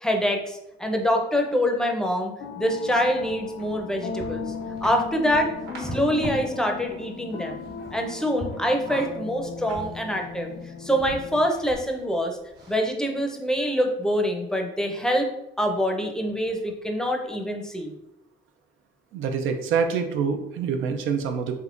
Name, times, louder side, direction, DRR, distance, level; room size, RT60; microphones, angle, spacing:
voice 1, 0.0-4.4 4.8-5.5 5.8-7.6 7.9-10.5 10.8-12.4 12.7-15.3 15.6-17.9, equal, 5° left, 2 dB, 0.5 m, -25 dB
sound 1, 2.4-11.5, left 5 dB, 85° left, 0.5 m, -37 dB
sound 2, 3.2-6.5 6.8-8.0 8.3-10.6 11.0-12.0 12.5-12.7, right 1 dB, 60° right, 1.2 m, -40 dB
voice 2, 19.1-21.6, right 6 dB, 85° right, 6 dB, 0.5 m, -26 dB
3.5 x 2.8 x 2.4 m, 0.87 s
cardioid pair, 90°, 20 cm